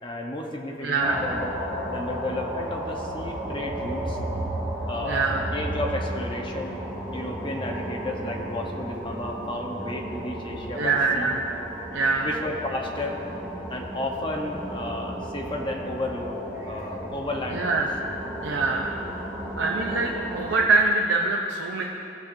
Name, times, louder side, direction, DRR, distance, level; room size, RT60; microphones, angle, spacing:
voice 1, 0.0-1.5 1.9-4.2 4.9-6.8 7.1-11.3 12.2-13.2 13.7-16.4 16.7-17.8, left 1 dB, 25° left, 0 dB, 0.9 m, -32 dB
voice 2, 0.8-1.3 5.1-5.5 10.7-11.4 11.9-12.3 17.5-17.9 18.4-18.9 19.6-21.8, right 3 dB, 85° right, 0 dB, 0.6 m, -24 dB
sound 1, 1.0-20.7, right 1 dB, 20° right, 2.2 m, -34 dB
17.0 x 7.1 x 2.6 m, 3.0 s
head